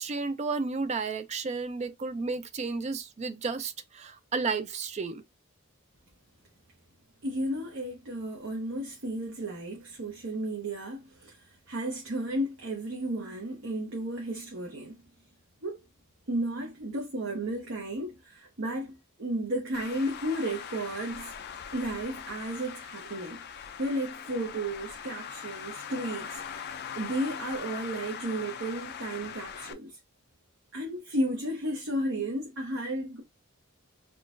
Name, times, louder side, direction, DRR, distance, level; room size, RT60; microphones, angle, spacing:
voice 1, 0.0-5.2, right 4 dB, 30° right, 0.4 m, -32 dB
voice 2, 7.2-11.4 11.7-15.0 15.6-15.8 16.3-21.3 21.7-26.7 26.9-30.0 30.7-33.2, right 1 dB, 60° right, 0.9 m, -33 dB
Traffic noise roadway noise, 19.7-29.7, left 7 dB, 50° left, 0.4 m, -41 dB
3.7 x 2.4 x 2.5 m
head